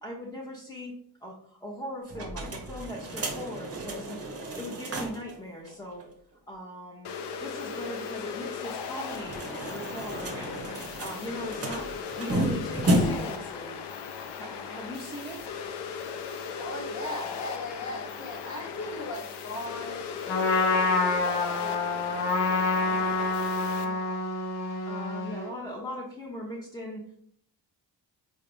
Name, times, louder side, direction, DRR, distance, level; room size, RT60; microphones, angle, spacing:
voice 1, 0.0-0.9 1.2-6.0 6.5-7.1 7.4-9.4 9.7-10.7 11.0-11.9 12.2-13.8 14.4-15.4 23.8-24.2 24.6-27.1, equal, 5° left, -3 dB, 0.8 m, -39 dB
sound 1, 2.1-5.3 5.7-5.8 6.0-6.1 8.9-13.4, right 1 dB, 30° right, 0.8 m, -32 dB
sound 2, 7.0-23.8, left 6 dB, 60° left, 0.6 m, -38 dB
voice 2, 16.6-21.9, left 2 dB, 35° left, 2 dB, 0.9 m, -38 dB
Trumpet, 20.3-25.5, left 3 dB, 80° left, 1.0 m, -27 dB
3.7 x 2.3 x 3.1 m, 0.64 s
supercardioid pair, 40°, 48 cm